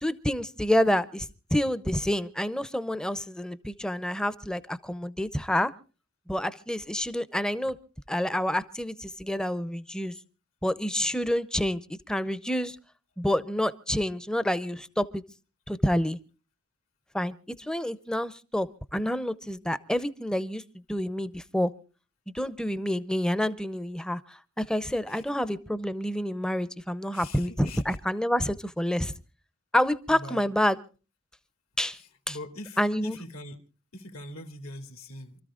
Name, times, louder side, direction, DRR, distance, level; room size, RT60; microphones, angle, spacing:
voice 1, 0.0-5.7 6.3-7.8 8.1-10.1 10.6-11.8 12.1-12.8 13.2-15.2 15.7-16.2 17.1-20.6 20.9-21.7 22.3-29.1 29.7-30.8 31.8-32.0 32.3-32.4 32.8-33.2, equal, 5° left, 0.6 m, -28 dB
voice 2, 27.1-28.0 30.1-30.5 31.9-33.6 33.9-35.4, left 1 dB, 75° left, 2.6 m, -43 dB
28.0 x 13.5 x 2.4 m
head